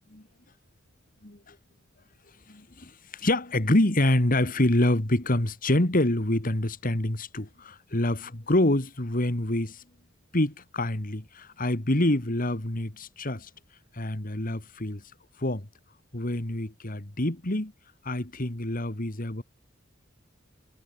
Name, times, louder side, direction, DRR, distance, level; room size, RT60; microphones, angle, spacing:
voice 1, 1.2-1.6 2.5-9.8 10.3-13.5 13.9-15.0 15.4-15.7 16.1-17.7 18.0-19.4, left 1 dB, 45° left, 2.3 m, -26 dB
head